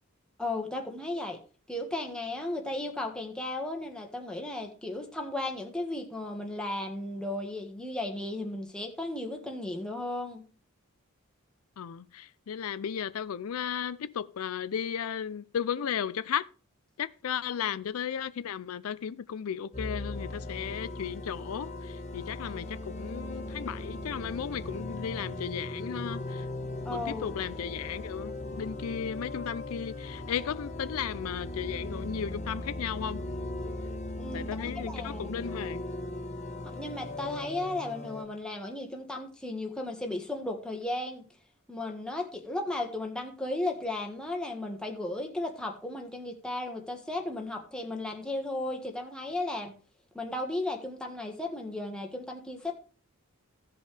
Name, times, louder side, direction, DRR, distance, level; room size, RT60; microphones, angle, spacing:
voice 1, 0.4-1.4 1.7-10.4 26.8-27.4 34.2-35.4 36.6-41.2 41.7-49.7 50.1-52.7, left 2 dB, 5° left, 1.5 m, -35 dB
voice 2, 11.8-16.4 17.0-26.4 26.9-33.2 34.3-35.8, left 8 dB, 85° left, 0.4 m, -35 dB
sound 1, 19.7-38.2, left 1 dB, 35° left, 1.3 m, -38 dB
16.0 x 5.3 x 3.3 m
head